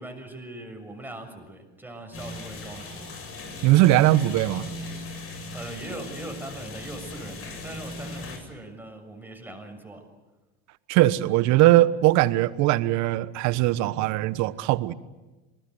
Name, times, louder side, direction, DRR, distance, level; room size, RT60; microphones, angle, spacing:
voice 1, 0.0-3.1 5.5-10.1, right 1 dB, 5° right, 4 dB, 6.7 m, -40 dB
sound 1, 2.1-8.4, left 2 dB, 45° left, 7.9 m, -38 dB
voice 2, 3.6-4.7 10.9-14.9, right 15 dB, 60° right, 16 dB, 1.2 m, -20 dB
28.0 x 20.5 x 8.0 m, 1.1 s
hypercardioid pair, 95°, 32 cm